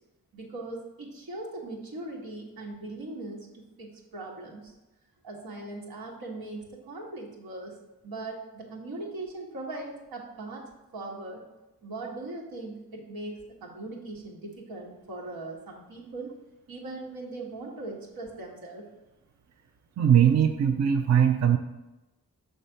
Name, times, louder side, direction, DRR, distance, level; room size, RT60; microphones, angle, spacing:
voice 1, 0.3-3.5 3.8-4.7 5.2-7.8 8.0-10.6 10.9-11.4 11.8-16.3 16.7-18.9, right 2 dB, 90° right, -1 dB, 1.5 m, -39 dB
voice 2, 20.0-21.6, right 9 dB, 50° right, 6 dB, 0.5 m, -20 dB
6.6 x 3.3 x 5.6 m, 1.0 s
cardioid pair, 85°, 35 cm